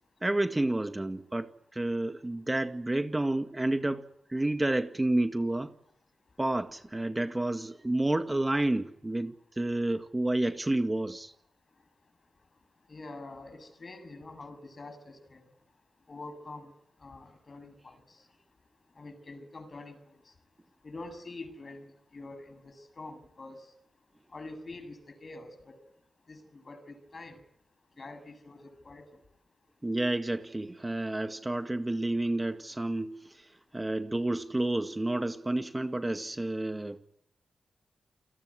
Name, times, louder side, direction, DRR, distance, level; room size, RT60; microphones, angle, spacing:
voice 1, 0.2-4.0 4.3-5.7 6.4-11.3 29.8-37.0, right 1 dB, 20° right, 8 dB, 2.0 m, -30 dB
voice 2, 12.9-15.4 16.1-16.7 17.0-18.0 19.0-20.0 20.8-23.6 24.3-25.8 26.3-27.4 28.0-29.2, left 2 dB, 50° left, 10 dB, 7.4 m, -45 dB
29.0 x 18.5 x 9.9 m, 0.74 s
cardioid pair, 55°, 0 cm